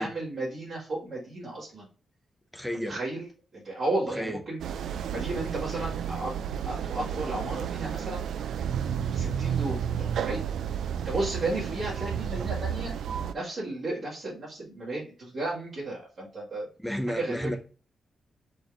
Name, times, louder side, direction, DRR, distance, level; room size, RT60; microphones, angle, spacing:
voice 1, 0.0-1.9 2.7-3.3 3.5-4.6 5.1-6.3 6.6-8.3 9.1-10.4 11.0-12.9 13.3-16.7 17.1-17.5, right 2 dB, 50° right, 1.9 m, -33 dB
voice 2, 2.5-3.0 4.2-4.4 16.8-17.6, equal, ahead, 0.5 m, -32 dB
sound 1, 4.6-13.3, right 8 dB, 85° right, 0.4 m, -31 dB
4.4 x 3.5 x 3.5 m
wide cardioid pair, 175°, 0 cm